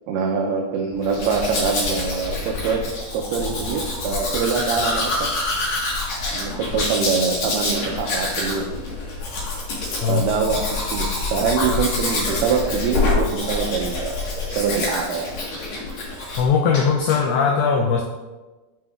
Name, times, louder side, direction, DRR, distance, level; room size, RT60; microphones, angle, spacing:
voice 1, 0.1-5.3 6.3-8.7 10.1-14.2 14.5-15.3 16.0-16.1, right 5 dB, 90° right, 1 dB, 2.2 m, -24 dB
sound 1, 0.9-14.2, right 4 dB, 50° left, 2.7 m, -46 dB
Domestic sounds home sounds, 1.0-16.5 16.7-17.2, left 2 dB, 65° left, 1.8 m, -26 dB
voice 2, 16.4-18.0, left 6 dB, 90° left, 1 dB, 2.2 m, -19 dB
7.0 x 6.0 x 2.3 m, 1.2 s
omnidirectional pair, 5.1 m